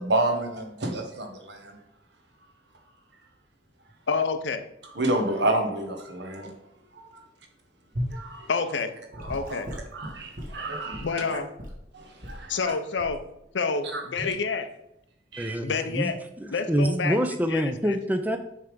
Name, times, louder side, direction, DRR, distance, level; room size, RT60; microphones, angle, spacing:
voice 1, 0.0-1.8 4.9-6.5 7.0-7.2 8.1-8.5 9.2-9.6 9.9-11.4 11.9-12.7 13.9-14.0 15.3-15.6, right 2 dB, 75° right, 4 dB, 1.1 m, -29 dB
voice 2, 4.1-4.7 8.5-8.9 9.3-9.7 11.0-11.5 12.5-13.2 13.5-14.7 15.6-16.2 16.5-17.2 17.5-18.0, left 5 dB, 85° left, 9 dB, 0.6 m, -28 dB
Gurgling / Sink (filling or washing) / Liquid, 7.9-8.2 9.1-11.8 12.2-12.5 13.0-13.2 14.2-14.4, equal, 45° right, 1.4 m, -36 dB
voice 3, 15.4-16.1 16.4-18.4, equal, 10° right, 7 dB, 0.4 m, -26 dB
6.6 x 3.4 x 5.1 m, 0.83 s
head